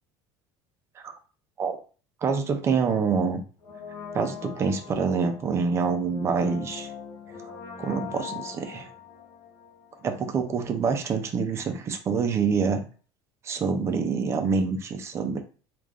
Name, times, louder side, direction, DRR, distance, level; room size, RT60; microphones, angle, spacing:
voice 1, 2.2-3.4 4.1-6.9 7.4-7.5 7.8-8.9 10.0-12.8 13.4-15.4, right 5 dB, 30° right, 6 dB, 0.6 m, -26 dB
Brass instrument, 3.6-10.5 10.7-10.8, left 6 dB, 45° left, 1.0 m, -42 dB
3.1 x 2.5 x 3.6 m, 0.37 s
cardioid pair, 145°, 9 cm